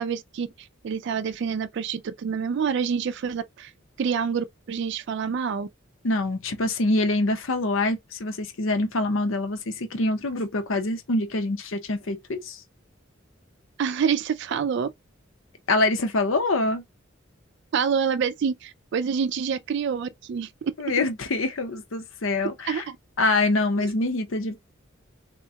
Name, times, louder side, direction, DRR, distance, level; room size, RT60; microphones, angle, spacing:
voice 1, 0.0-3.7 4.0-5.7 13.8-14.9 17.7-20.7 22.7-23.0 23.8-23.9, right 6 dB, 60° right, 0.3 m, -27 dB
voice 2, 6.0-12.6 15.7-16.8 20.8-22.8 23.2-24.6, left 2 dB, 75° left, 0.7 m, -25 dB
3.7 x 2.2 x 2.7 m
head